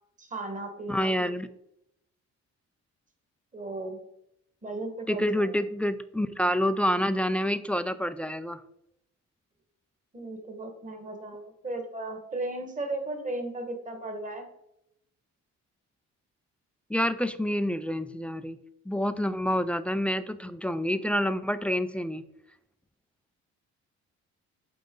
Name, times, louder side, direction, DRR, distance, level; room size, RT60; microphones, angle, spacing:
voice 1, 0.2-1.3 3.5-4.0 4.6-5.5 10.1-14.5, right 2 dB, 25° right, 5 dB, 1.5 m, -36 dB
voice 2, 0.9-1.5 5.1-8.6 16.9-18.6 18.9-22.2, equal, 5° left, 12 dB, 0.3 m, -28 dB
8.5 x 3.9 x 3.8 m, 0.78 s
cardioid pair, 90°, 30 cm